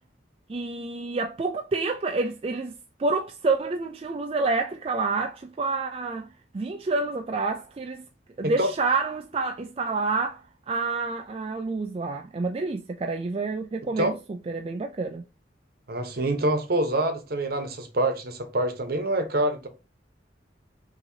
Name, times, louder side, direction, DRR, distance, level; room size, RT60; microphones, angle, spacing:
voice 1, 0.5-6.3 6.5-8.0 8.4-14.1 14.5-15.2, right 3 dB, 30° right, 0.3 m, -28 dB
voice 2, 15.9-19.7, right 1 dB, 55° right, 1.0 m, -26 dB
5.6 x 2.9 x 2.7 m
head